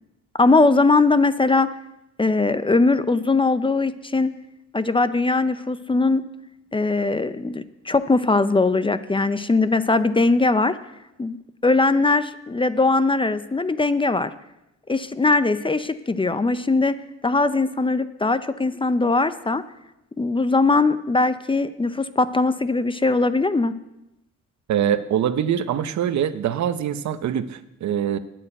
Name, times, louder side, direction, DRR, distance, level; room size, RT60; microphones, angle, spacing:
voice 1, 0.4-1.7 2.2-4.3 4.7-6.3 6.7-10.8 11.2-11.4 11.6-14.3 14.9-16.9 17.2-19.6 20.2-23.7, left 3 dB, 15° left, 13 dB, 0.6 m, -20 dB
voice 2, 24.7-28.2, right 9 dB, 65° right, 12 dB, 0.9 m, -23 dB
9.1 x 8.6 x 8.9 m, 0.92 s
cardioid pair, 90°, 30 cm